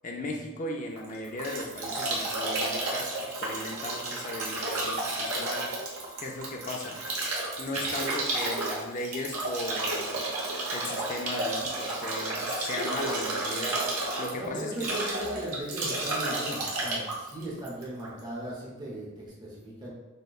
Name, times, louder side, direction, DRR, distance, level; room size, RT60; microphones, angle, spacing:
voice 1, 0.0-5.6 6.2-7.0 7.6-10.3 10.7-13.8 14.2-14.9, left 2 dB, 35° left, 1 dB, 0.4 m, -37 dB
Bathtub (filling or washing) / Drip / Trickle dribble, 1.0-18.2, right 2 dB, 85° right, 1.0 m, -32 dB
voice 2, 14.3-19.9, right 1 dB, 20° right, -5 dB, 0.8 m, -38 dB
6.3 x 2.2 x 2.3 m, 1.2 s
head